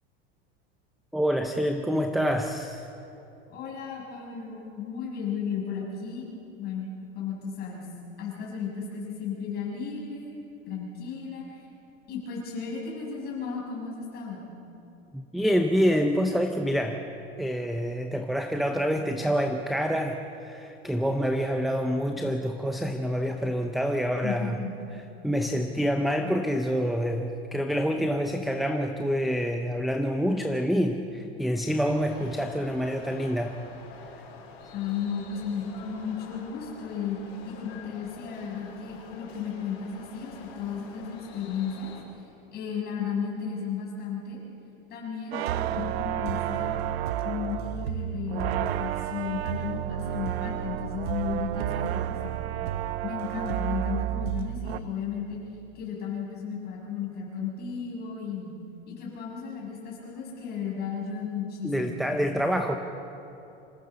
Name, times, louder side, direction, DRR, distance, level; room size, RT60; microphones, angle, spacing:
voice 1, 1.1-2.8 15.1-17.0 17.4-24.6 25.2-33.6 61.6-62.8, equal, ahead, 5 dB, 0.6 m, -27 dB
voice 2, 3.5-6.3 6.6-6.9 7.1-7.9 8.2-10.4 10.7-11.5 12.1-14.4 24.2-24.7 34.7-37.2 37.4-41.9 42.5-44.4 44.9-46.8 47.2-52.4 53.0-55.4 55.7-58.5 58.9-62.3, left 6 dB, 30° left, -3 dB, 6.6 m, -34 dB
sound 1, 31.8-42.0, left 5 dB, 80° left, 5.0 m, -47 dB
sound 2, 45.3-54.8, right 11 dB, 85° right, 0.9 m, -30 dB
26.5 x 15.0 x 7.0 m, 2.8 s
supercardioid pair, 150°, 31 cm